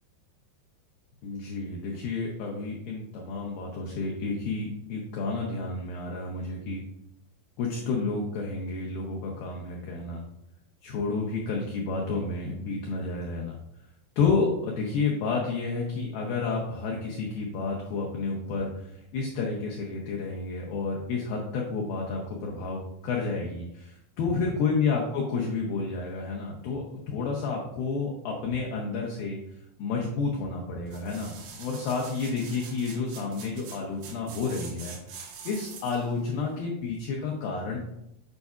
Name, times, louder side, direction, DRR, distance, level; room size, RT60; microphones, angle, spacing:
voice 1, 1.2-6.8 7.6-10.3 10.8-13.6 14.2-29.4 29.8-37.8, left 4 dB, 85° left, -1 dB, 2.0 m, -30 dB
sound 1, 30.9-36.1 36.6-36.7, right 6 dB, 80° right, 3.4 m, -45 dB
8.2 x 5.3 x 2.4 m, 0.80 s
omnidirectional pair, 5.2 m